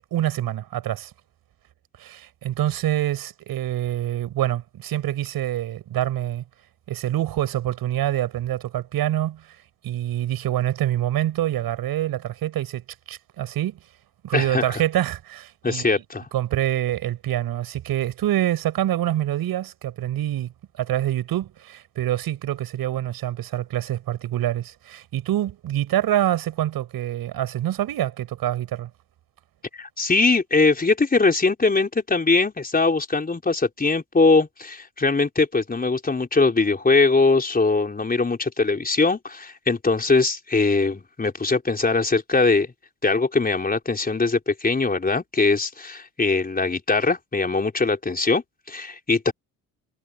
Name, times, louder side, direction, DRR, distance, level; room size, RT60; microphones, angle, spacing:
voice 1, 0.1-1.1 2.0-6.4 6.9-9.5 9.8-13.8 14.2-16.0 16.3-20.5 20.8-28.9, right 12 dB, 75° right, 5.9 m, -26 dB
voice 2, 14.3-14.8 15.6-16.3 29.7-42.7 43.0-49.3, left 3 dB, 25° left, 4.5 m, -21 dB
cardioid pair, 80°, 37 cm